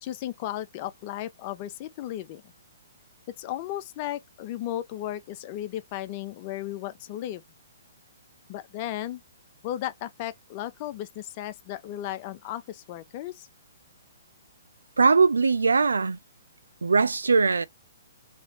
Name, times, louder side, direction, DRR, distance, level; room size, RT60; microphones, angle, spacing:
voice 1, 0.0-2.4 3.4-7.4 8.5-9.2 9.6-13.5, left 13 dB, 40° left, 0.6 m, -35 dB
voice 2, 15.0-16.2 16.8-17.7, right 4 dB, 85° right, 0.4 m, -20 dB
3.2 x 3.0 x 2.7 m
hypercardioid pair, 130°, 0 cm